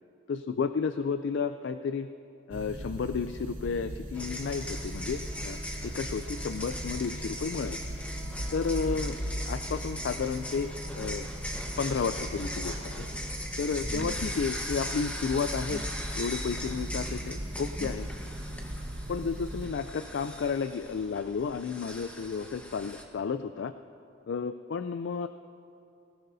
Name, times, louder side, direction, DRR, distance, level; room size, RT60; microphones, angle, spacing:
voice 1, 0.3-2.1 2.5-7.8 8.5-9.2 9.5-10.7 11.0-11.3 11.8-13.1 13.6-15.8 16.2-18.1 19.1-23.7 24.3-25.3, left 5 dB, 65° left, 10 dB, 0.3 m, -32 dB
sound 1, 2.5-19.7, equal, 80° right, 3.1 m, -38 dB
sound 2, 4.1-23.0, equal, 5° left, 1.1 m, -39 dB
19.5 x 18.0 x 2.7 m, 2.7 s
head